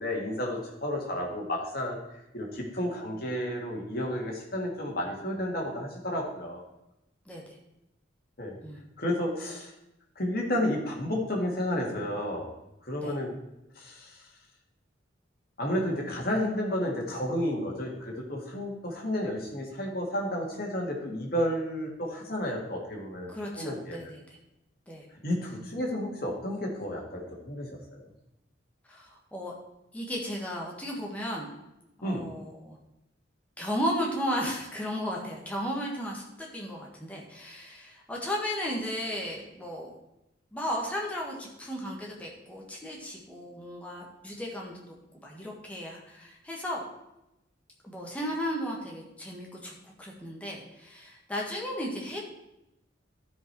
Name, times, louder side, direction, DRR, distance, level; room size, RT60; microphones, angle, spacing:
voice 1, 0.0-2.0 2.3-6.6 8.4-8.6 9.0-9.7 10.2-12.5 12.9-13.3 13.8-14.2 15.6-24.1 25.2-28.0 32.0-32.3, left 1 dB, 50° left, -1 dB, 2.0 m, -31 dB
voice 2, 7.2-7.6 8.6-8.8 13.0-13.1 23.3-24.2 24.9-25.1 28.9-29.5 29.9-31.5 32.0-32.8 33.6-40.0 40.5-46.8 47.8-52.2, equal, 5° left, -3 dB, 1.5 m, -35 dB
12.5 x 5.1 x 4.6 m, 0.91 s
head